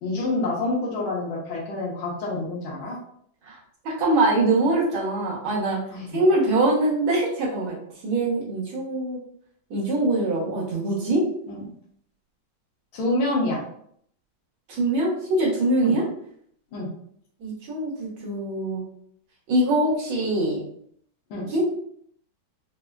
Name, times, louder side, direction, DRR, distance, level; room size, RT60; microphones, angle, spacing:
voice 1, 0.0-3.0 5.9-6.2 11.5-11.6 12.9-13.6 15.8-16.0 16.7-16.9 21.3-21.4, left 2 dB, 85° left, -3 dB, 1.7 m, -27 dB
voice 2, 3.9-5.8 6.1-7.7 8.0-9.2 9.7-11.2 14.7-16.0 17.4-18.8 19.5-20.6 21.5-21.6, right 2 dB, 75° right, -5 dB, 1.9 m, -23 dB
4.7 x 2.1 x 2.3 m, 0.66 s
omnidirectional pair, 2.2 m